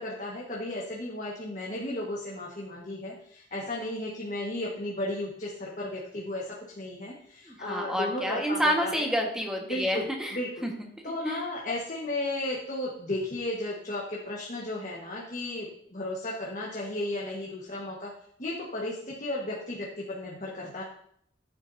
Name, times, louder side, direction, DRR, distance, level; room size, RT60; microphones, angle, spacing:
voice 1, 0.0-9.1 9.7-10.7 11.0-18.1 18.4-20.8, left 1 dB, 45° left, -3 dB, 1.5 m, -34 dB
voice 2, 7.5-10.7 11.2-11.4, equal, 5° right, 1 dB, 1.4 m, -29 dB
14.0 x 8.7 x 2.7 m, 0.69 s
head